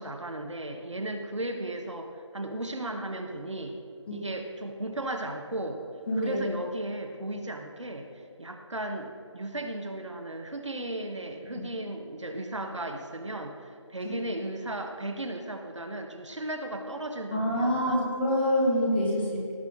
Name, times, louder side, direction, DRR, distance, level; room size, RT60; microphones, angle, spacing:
voice 1, 0.0-3.8 4.1-5.8 6.2-8.1 8.4-18.1, right 1 dB, 75° right, 5 dB, 1.4 m, -35 dB
voice 2, 6.1-6.4 11.5-11.6 17.3-19.5, equal, 20° left, -4 dB, 2.1 m, -26 dB
17.5 x 7.3 x 4.1 m, 2.6 s
figure-of-eight pair, 165°, 16 cm